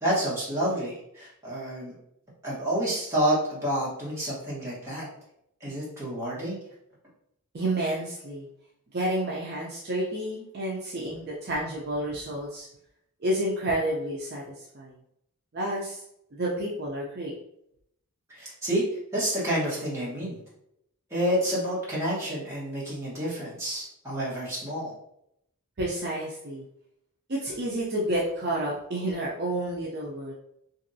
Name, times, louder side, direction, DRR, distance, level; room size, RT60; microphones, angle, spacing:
voice 1, 0.0-1.9 2.4-5.1 5.6-6.6 18.3-18.8 19.1-20.4 21.1-24.9, right 1 dB, 10° right, -8 dB, 1.2 m, -29 dB
voice 2, 7.5-8.5 8.9-12.7 13.2-15.0 15.5-16.0 16.4-17.3 25.8-26.6 27.3-30.3, right 1 dB, 45° right, -4 dB, 0.5 m, -30 dB
2.9 x 2.6 x 2.6 m, 0.75 s
head